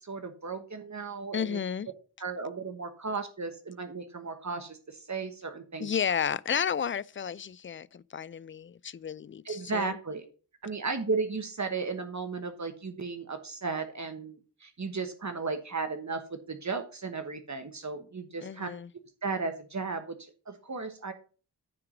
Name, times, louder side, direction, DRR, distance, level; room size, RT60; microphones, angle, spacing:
voice 1, 0.0-1.6 2.2-5.9 9.4-10.2 10.6-18.7 19.2-21.1, right 4 dB, 45° right, 1.3 m, -35 dB
voice 2, 1.3-1.9 5.8-10.0 18.4-18.9, left 7 dB, 30° left, 0.4 m, -32 dB
9.5 x 4.6 x 5.0 m
wide cardioid pair, 75°, 40 cm